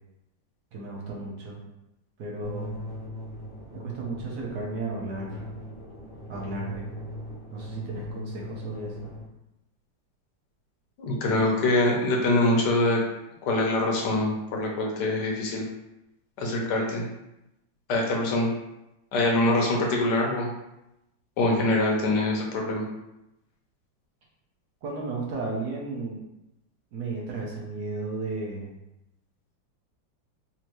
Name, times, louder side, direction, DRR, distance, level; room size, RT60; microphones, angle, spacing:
voice 1, 0.7-1.6 2.2-2.8 3.7-5.5 6.3-6.9 7.5-9.1 24.8-26.2 26.9-28.7, right 3 dB, 65° right, -3 dB, 1.2 m, -34 dB
sound 1, 2.4-9.2, left 1 dB, 45° left, 0.9 m, -39 dB
voice 2, 11.0-13.0 13.4-15.7 16.4-17.1 17.9-18.5 19.1-20.5 21.4-22.8, left 2 dB, 65° left, 0 dB, 1.4 m, -24 dB
4.3 x 2.7 x 3.0 m, 0.90 s
omnidirectional pair, 2.1 m